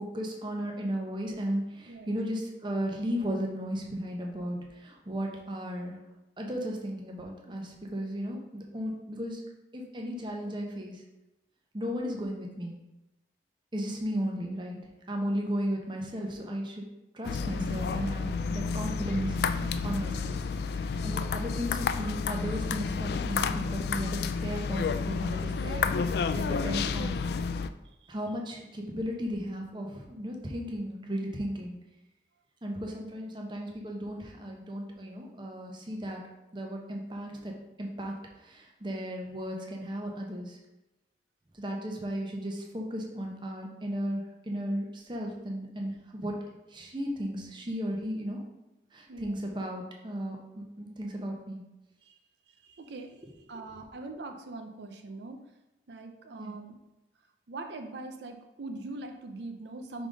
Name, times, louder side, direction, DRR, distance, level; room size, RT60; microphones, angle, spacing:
voice 1, 0.0-6.0 6.4-9.4 9.7-11.0 11.7-12.8 13.7-14.8 15.1-16.8 17.1-20.4 20.8-27.2 28.1-31.8 32.6-36.2 36.5-37.5 37.8-40.6 41.5-46.3 46.7-48.4 48.9-51.6 56.4-56.5, equal, 25° right, 0 dB, 0.8 m, -35 dB
sound 1, 17.2-27.7, left 5 dB, 65° left, 0.3 m, -30 dB
voice 2, 19.5-20.1 27.8-28.1 49.1-49.4 52.0-52.2 52.5-55.4 55.9-56.8 57.5-60.1, right 2 dB, 80° right, 5 dB, 0.6 m, -42 dB
4.9 x 3.8 x 5.1 m, 0.97 s
head